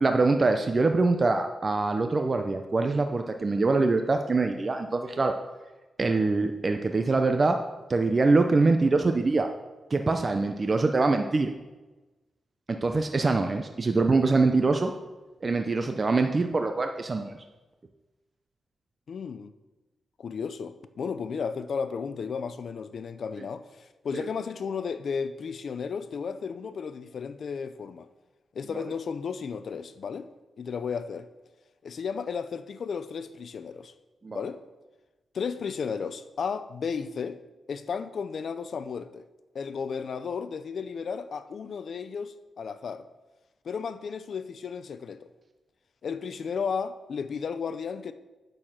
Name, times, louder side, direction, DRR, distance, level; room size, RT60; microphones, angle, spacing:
voice 1, 0.0-5.4 6.0-7.6 7.9-9.5 9.9-11.5 12.7-14.9 15.4-17.4 24.1-24.2 28.7-28.8 34.2-34.4, right 3 dB, 40° right, 0.6 m, -24 dB
voice 2, 19.1-19.5 20.2-28.1 28.5-30.3 30.6-31.3 31.8-33.9 34.3-34.6 35.3-37.4 37.7-39.3 39.5-43.1 43.6-45.3 46.0-48.1, left 6 dB, 65° left, 0.6 m, -34 dB
8.9 x 6.4 x 5.8 m
cardioid pair, 85°, 0 cm